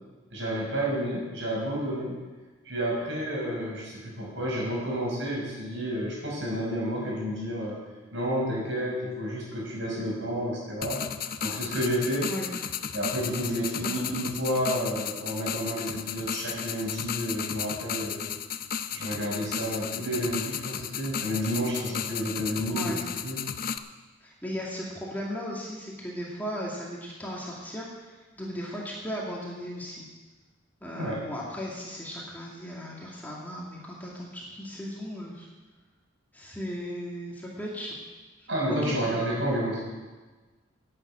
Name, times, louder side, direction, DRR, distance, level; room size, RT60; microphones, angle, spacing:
voice 1, 0.3-2.1 2.7-7.8 8.1-11.0 11.4-12.3 12.9-18.2 18.9-23.0 23.2-23.4 30.9-31.2 38.5-39.8, equal, 65° right, -4 dB, 5.8 m, -30 dB
sound 1, 10.8-23.8, left 8 dB, 45° left, 0.6 m, -34 dB
voice 2, 22.7-23.0 24.2-30.1 30.8-35.5 36.3-38.0 38.7-39.1, equal, 10° left, -4 dB, 2.3 m, -36 dB
11.5 x 8.9 x 8.6 m, 1.3 s
head